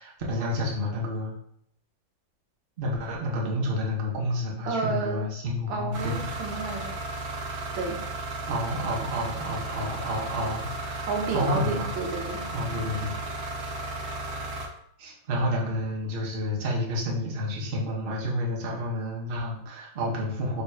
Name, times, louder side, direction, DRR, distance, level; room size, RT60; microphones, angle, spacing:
voice 1, 0.0-1.3 2.8-6.3 8.5-11.9 12.5-13.1 15.0-20.6, left 1 dB, 45° right, -2 dB, 0.7 m, -30 dB
voice 2, 4.6-5.3 5.7-7.0 7.7-8.0 11.1-12.4, right 4 dB, 85° right, 2 dB, 1.5 m, -30 dB
sound 1, 5.9-14.7, right 2 dB, 70° right, 1.0 m, -34 dB
3.4 x 2.4 x 4.2 m, 0.71 s
omnidirectional pair, 2.0 m